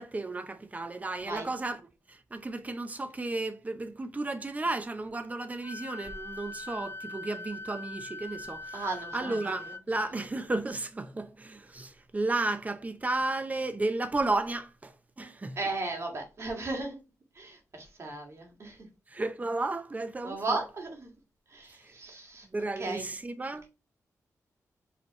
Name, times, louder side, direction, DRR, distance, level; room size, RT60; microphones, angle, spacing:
voice 1, 0.0-1.8 2.1-8.7 9.1-14.9 15.2-15.6 19.1-20.6 22.5-23.6, right 2 dB, 25° right, 0.6 m, -33 dB
Wind instrument woodwind instrument, 5.6-9.8, left 2 dB, 45° left, 0.4 m, -42 dB
voice 2, 8.7-10.2 15.5-17.0 17.3-18.9 20.2-21.1 21.5-22.5 22.8-23.1, right 2 dB, 50° right, 1.7 m, -36 dB
5.1 x 3.3 x 3.0 m
cardioid pair, 85°, 6 cm